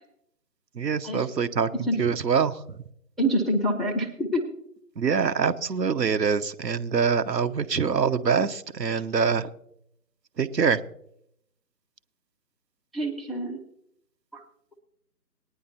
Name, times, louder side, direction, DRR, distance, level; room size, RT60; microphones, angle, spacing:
voice 1, 0.8-2.6 5.0-9.5 10.4-10.8, right 6 dB, 85° right, 11 dB, 0.9 m, -24 dB
voice 2, 3.2-4.5 12.9-13.6 14.3-14.4, equal, ahead, -2 dB, 0.5 m, -26 dB
19.0 x 9.9 x 2.8 m, 0.74 s
figure-of-eight pair, 160°, 48 cm